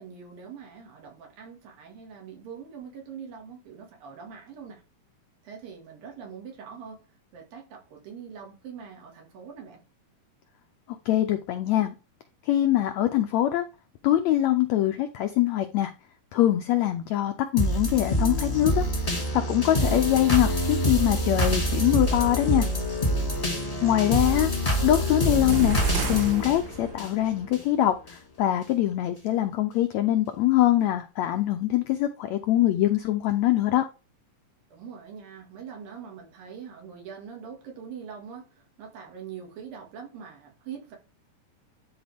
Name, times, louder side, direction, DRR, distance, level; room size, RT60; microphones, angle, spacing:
voice 1, 0.0-4.8 5.4-7.0 7.3-9.8 23.7-24.2 34.7-41.0, right 7 dB, 85° right, 4.0 m, -43 dB
voice 2, 11.1-11.9 12.5-13.6 14.0-15.9 16.3-22.6 23.8-24.5 24.8-25.8 26.0-33.8, left 13 dB, 85° left, 1.5 m, -23 dB
sound 1, 17.6-27.6 28.1-28.2, equal, 20° left, 1.0 m, -26 dB
sound 2, 25.5-27.3, right 8 dB, 70° right, 2.2 m, -32 dB
12.0 x 4.4 x 3.5 m
omnidirectional pair, 3.9 m